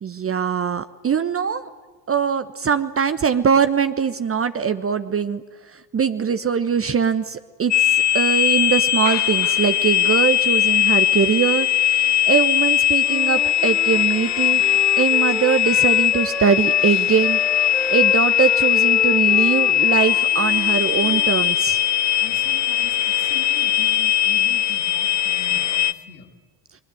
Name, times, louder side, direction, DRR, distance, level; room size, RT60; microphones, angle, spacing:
voice 1, 0.0-1.6 2.1-5.4 5.7-14.6 15.0-17.4 17.9-21.8, right 7 dB, 30° right, 11 dB, 1.0 m, -22 dB
sound 1, 7.7-25.9, left 11 dB, 35° left, 1.0 m, -19 dB
Wind instrument woodwind instrument, 13.0-21.3, left 1 dB, 5° left, 0.9 m, -34 dB
voice 2, 22.2-26.3, left 7 dB, 85° left, 3 dB, 2.5 m, -41 dB
28.5 x 21.5 x 7.8 m, 1.4 s
figure-of-eight pair, 55°, 49 cm